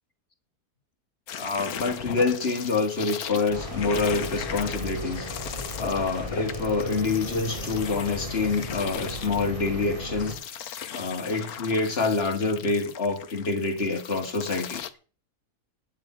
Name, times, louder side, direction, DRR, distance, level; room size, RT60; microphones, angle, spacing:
sound 1, 1.3-14.9, left 9 dB, 70° left, 1.4 m, -38 dB
voice 1, 1.3-5.3 5.8-10.6 10.9-14.8, left 3 dB, 40° left, 2.2 m, -27 dB
sound 2, 3.5-10.3, left 1 dB, 20° right, 3.6 m, -35 dB
9.8 x 8.5 x 9.5 m
omnidirectional pair, 1.7 m